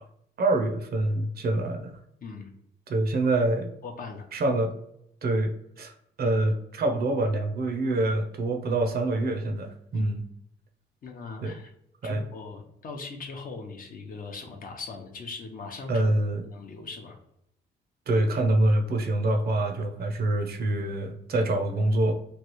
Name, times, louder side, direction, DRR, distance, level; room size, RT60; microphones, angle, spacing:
voice 1, 0.4-2.0 2.9-3.7 4.3-4.7 5.2-5.9 6.2-10.2 11.4-11.6 12.0-12.2 15.9-16.4 18.1-22.1, right 2 dB, 50° right, 4 dB, 0.7 m, -25 dB
voice 2, 3.8-4.3 9.9-10.1 11.0-11.7 12.0-16.1 16.4-17.2, left 4 dB, 45° left, 2 dB, 0.7 m, -40 dB
3.2 x 2.3 x 3.0 m, 0.78 s
cardioid pair, 90°, 20 cm